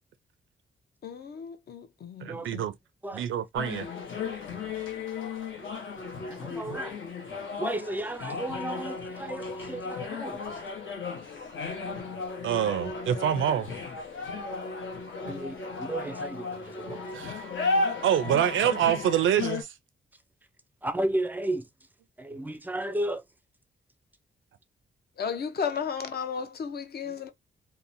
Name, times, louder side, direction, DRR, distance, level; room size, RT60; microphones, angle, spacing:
voice 1, 1.0-2.6 25.2-27.3, left 6 dB, 55° left, 0.6 m, -34 dB
voice 2, 2.2-2.7 3.1-3.9 12.4-13.7 17.1-17.5 18.0-19.7, right 10 dB, 85° right, 0.4 m, -26 dB
sound 1, 3.5-19.6, left 4 dB, 80° left, 0.9 m, -34 dB
voice 3, 6.3-7.0 7.6-10.5 15.2-17.0 20.8-21.7 22.2-23.2, right 1 dB, 10° right, 0.4 m, -33 dB
2.8 x 2.1 x 2.5 m
wide cardioid pair, 120°, 20 cm